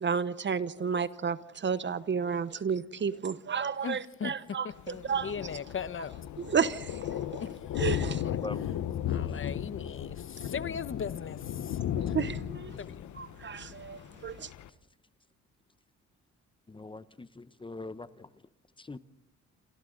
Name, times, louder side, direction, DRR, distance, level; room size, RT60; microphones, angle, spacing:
voice 1, 0.0-5.3 6.4-7.0 7.8-8.2 12.0-12.8 13.1-14.5, right 6 dB, 40° right, 0.9 m, -32 dB
voice 2, 3.8-4.3 4.9-6.1 7.4-7.5 8.2-8.4 9.1-11.8 12.8-13.1, left 7 dB, 45° left, 1.1 m, -38 dB
Thunder, 4.7-14.7, left 10 dB, 70° left, 1.2 m, -35 dB
voice 3, 16.7-18.3 18.8-19.0, left 3 dB, 15° left, 0.8 m, -42 dB
28.5 x 27.0 x 3.9 m
cardioid pair, 90°, 30 cm